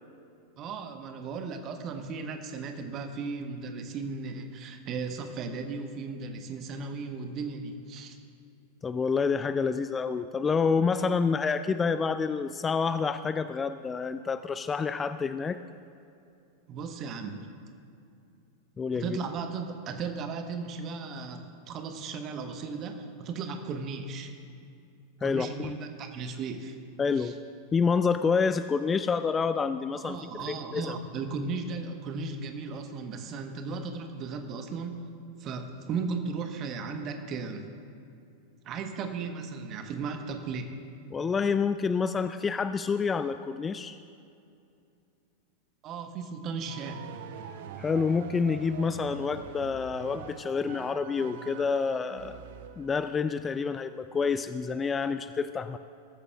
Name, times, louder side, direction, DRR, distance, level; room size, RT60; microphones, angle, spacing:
voice 1, 0.6-8.2 16.7-17.5 18.9-24.3 25.2-26.8 27.2-27.3 29.9-35.0 35.4-37.7 38.6-40.7 45.8-47.0, right 4 dB, 35° right, 6 dB, 1.2 m, -36 dB
voice 2, 8.8-15.6 18.8-19.2 25.2-25.7 27.0-27.3 27.7-30.2 30.5-31.0 41.1-44.0 47.8-52.4 52.8-55.8, left 5 dB, 20° left, 12 dB, 0.3 m, -28 dB
sound 1, 46.7-53.1, right 8 dB, 55° right, 0.7 m, -44 dB
21.5 x 13.5 x 2.4 m, 2.5 s
figure-of-eight pair, 90°, 0 cm